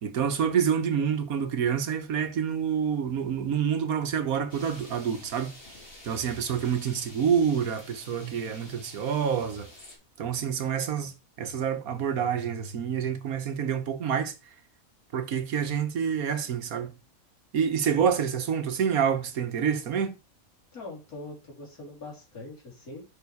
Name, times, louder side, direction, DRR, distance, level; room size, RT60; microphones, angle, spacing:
voice 1, 0.0-5.5 6.0-9.7 10.2-14.3 15.1-16.9 17.5-20.2, right 7 dB, 80° right, 1.6 m, -27 dB
sound 1, 4.5-10.0, left 1 dB, 40° left, 3.0 m, -49 dB
voice 2, 17.8-18.2 20.7-23.1, left 2 dB, 90° left, 3.6 m, -43 dB
7.1 x 6.2 x 4.6 m
omnidirectional pair, 1.5 m